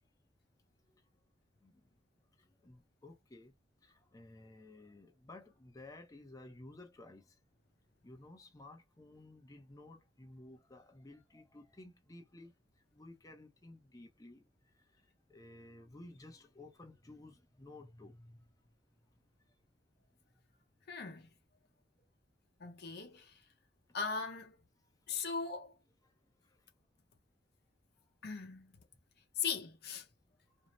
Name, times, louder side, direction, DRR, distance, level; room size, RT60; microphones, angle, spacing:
voice 1, 2.4-3.5 3.8-7.4 8.0-18.5 19.0-19.1 19.5-19.6 22.0-22.1 24.8-24.9 26.0-26.1 26.4-26.7 30.5-30.6, left 2 dB, 20° left, 0.6 m, -55 dB
voice 2, 20.9-21.3 22.6-23.3 23.9-24.6 25.1-25.7 28.2-28.7 29.4-30.0, left 5 dB, 60° left, 0.7 m, -39 dB
2.6 x 2.0 x 2.9 m
head